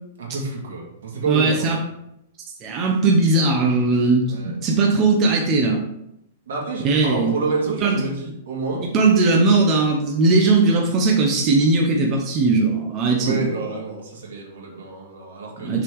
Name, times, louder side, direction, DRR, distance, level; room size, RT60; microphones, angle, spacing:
voice 1, 0.2-1.7 4.3-4.5 6.5-8.9 13.2-15.8, right 3 dB, 85° right, -2 dB, 2.3 m, -28 dB
voice 2, 1.3-1.8 2.6-5.8 6.8-7.4 7.8-8.0 8.8-13.5 15.6-15.8, right 3 dB, 20° right, -1 dB, 0.8 m, -19 dB
6.1 x 4.1 x 4.7 m, 0.82 s
supercardioid pair, 170°, 0 cm